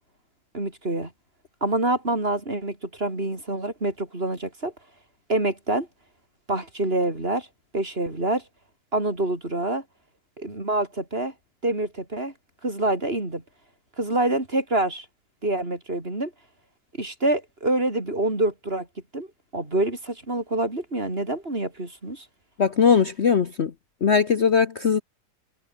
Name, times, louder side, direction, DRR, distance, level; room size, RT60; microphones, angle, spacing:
voice 1, 0.5-1.1 1.6-4.7 5.3-5.9 6.5-7.5 7.7-8.4 8.9-9.8 10.4-11.3 11.6-12.3 12.6-13.4 14.0-15.0 15.4-16.3 17.0-18.9 19.1-19.3 19.5-22.2, right 2 dB, 35° right, 4.9 m, -26 dB
voice 2, 22.6-23.7 24.0-25.0, left 6 dB, 45° left, 1.2 m, -20 dB
omnidirectional pair, 1.8 m